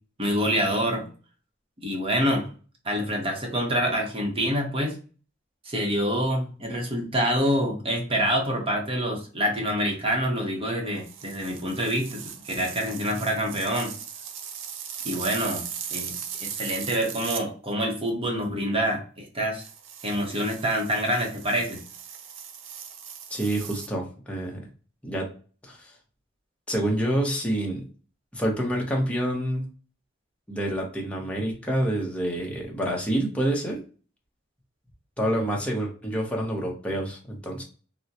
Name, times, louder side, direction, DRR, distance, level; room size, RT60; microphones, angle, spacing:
voice 1, 0.2-1.1 1.8-2.5 2.8-5.0 5.6-12.2 12.5-13.9 15.0-15.6 15.9-16.1 16.4-19.7 20.0-21.8, equal, 30° right, 1 dB, 0.8 m, -26 dB
sound 1, 11.0-17.5 19.6-23.9, right 8 dB, 90° right, 0.5 m, -38 dB
voice 2, 23.3-24.7 25.0-25.3 25.7-25.9 26.7-27.8 28.3-29.7 30.5-33.8 35.2-37.6, right 1 dB, 5° left, -2 dB, 0.8 m, -27 dB
3.7 x 2.1 x 2.8 m, 0.37 s
head